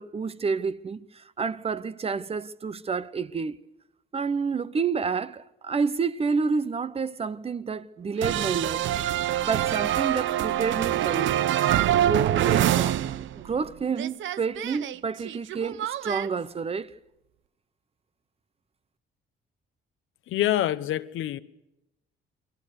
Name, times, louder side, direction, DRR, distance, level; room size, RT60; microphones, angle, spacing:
voice 1, 0.0-3.6 4.1-8.9 9.1-11.3 11.9-13.0 13.3-16.9, right 5 dB, 30° right, 0.9 m, -29 dB
sound 1, 8.2-13.7 13.9-16.3, right 12 dB, 70° right, 0.9 m, -25 dB
voice 2, 20.3-21.4, left 13 dB, 80° left, 1.2 m, -26 dB
29.5 x 22.0 x 6.7 m
cardioid pair, 125°, 21 cm